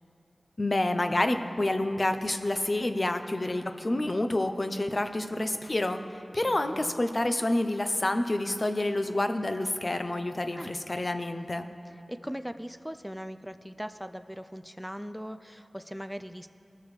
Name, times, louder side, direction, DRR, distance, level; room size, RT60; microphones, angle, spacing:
voice 1, 0.6-11.7, left 1 dB, 45° left, 8 dB, 0.6 m, -28 dB
voice 2, 6.3-6.9 10.6-10.8 12.1-16.5, equal, 5° right, 9 dB, 0.3 m, -40 dB
19.0 x 6.6 x 3.2 m, 2.8 s
wide cardioid pair, 45°, 0 cm